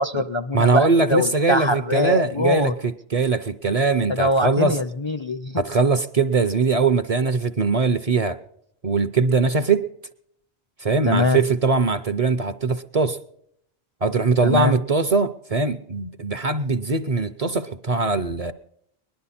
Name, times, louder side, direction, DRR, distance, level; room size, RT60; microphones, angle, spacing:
voice 1, 0.0-2.7 4.1-5.6 11.1-11.4 14.4-14.7, left 1 dB, 35° left, 9 dB, 0.5 m, -22 dB
voice 2, 0.5-4.8 5.6-8.4 8.8-9.8 10.8-13.2 14.0-18.5, right 4 dB, 40° right, 11 dB, 0.7 m, -21 dB
20.0 x 11.5 x 4.2 m, 0.70 s
omnidirectional pair, 1.0 m